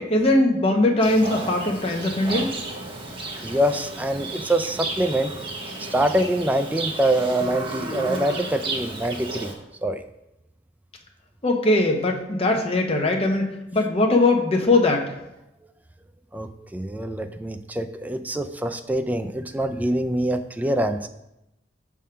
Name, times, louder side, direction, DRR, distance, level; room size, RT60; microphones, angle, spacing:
voice 1, 0.0-2.5 11.4-13.5 13.7-15.1, left 2 dB, 35° left, 1 dB, 0.8 m, -20 dB
Livestock farm animals working animals, 1.0-9.5, right 2 dB, 30° right, 0.9 m, -33 dB
voice 2, 3.4-5.3 5.8-9.5 9.8-10.0 16.3-21.1, right 1 dB, 10° right, 8 dB, 0.3 m, -25 dB
6.2 x 3.6 x 5.6 m, 0.87 s
head